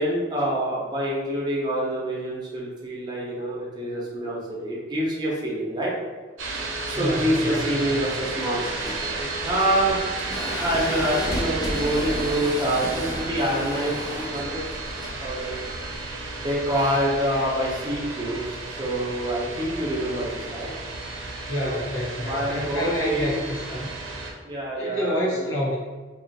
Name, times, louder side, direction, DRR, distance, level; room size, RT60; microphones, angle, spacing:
voice 1, 0.0-5.9 6.9-10.0 10.6-14.6 15.2-15.6 16.4-18.4 18.7-20.7 21.6-21.8 22.1-23.4 24.4-25.5, right 1 dB, 20° right, -5 dB, 0.7 m, -26 dB
sound 1, 6.4-24.3, right 3 dB, 80° right, 0.6 m, -33 dB
voice 2, 6.9-7.9 21.5-23.9 24.8-25.8, left 1 dB, 70° left, -5 dB, 1.0 m, -28 dB
sound 2, 8.7-16.5, left 1 dB, 20° left, 0.4 m, -34 dB
2.7 x 2.5 x 4.0 m, 1.4 s
head